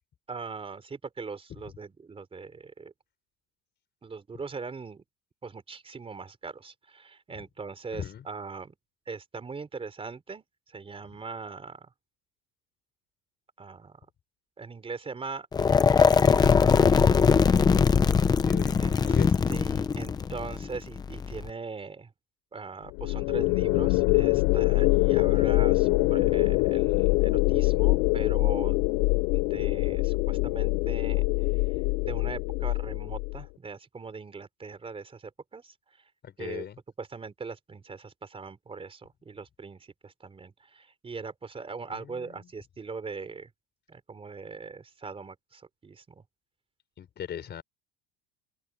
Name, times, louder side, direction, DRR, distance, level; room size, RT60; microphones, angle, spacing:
voice 1, 0.3-2.9 4.0-5.0 5.4-8.7 9.1-11.9 13.6-14.0 14.6-15.5 16.6-17.2 18.8-19.2 19.5-22.1 22.5-28.8 29.3-36.1 36.4-36.6 37.0-43.5 43.9-46.2, right 4 dB, 15° right, 4.4 m, -41 dB
voice 2, 7.9-8.2 18.4-19.3 36.2-36.8 41.9-42.5 47.0-47.6, left 9 dB, 25° left, 4.4 m, -39 dB
sound 1, 15.5-21.5, left 6 dB, 10° left, 0.5 m, -21 dB
sound 2, 22.9-33.4, left 26 dB, 65° left, 3.0 m, -24 dB
cardioid pair, 160°, 38 cm